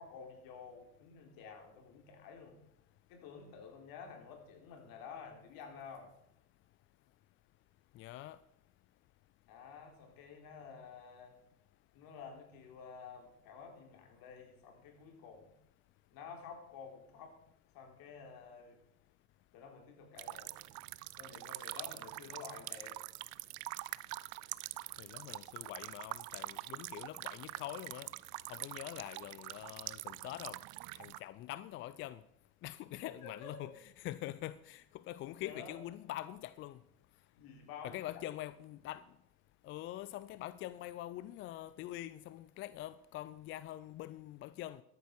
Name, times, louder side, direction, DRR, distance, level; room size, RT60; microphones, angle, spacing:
voice 1, 0.0-2.6 3.1-6.1 9.5-11.4 11.9-15.5 16.1-17.4 17.7-18.8 19.5-20.6 21.2-23.0 33.2-33.6 35.4-35.8 37.3-38.0, left 6 dB, 50° left, 3.5 m, -51 dB
voice 2, 7.9-8.4 25.0-28.1 28.5-30.6 30.9-32.2 32.6-33.7 34.0-36.8 37.8-39.0 39.6-44.8, left 14 dB, 30° left, 0.4 m, -44 dB
sound 1, 20.2-31.2, right 20 dB, 45° right, 0.5 m, -45 dB
13.0 x 10.5 x 4.6 m
hypercardioid pair, 85°, 44 cm